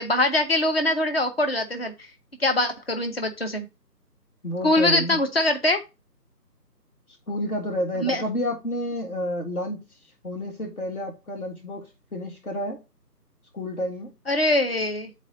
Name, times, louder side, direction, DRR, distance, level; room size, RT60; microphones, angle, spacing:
voice 1, 0.0-1.9 2.4-3.7 4.6-5.8 8.0-8.2 14.3-15.1, left 1 dB, 35° left, 0.7 m, -23 dB
voice 2, 4.4-5.2 7.3-9.9 10.2-12.8 13.5-14.1, left 1 dB, 60° left, 1.9 m, -30 dB
10.0 x 4.2 x 2.6 m
figure-of-eight pair, 165°, 50 cm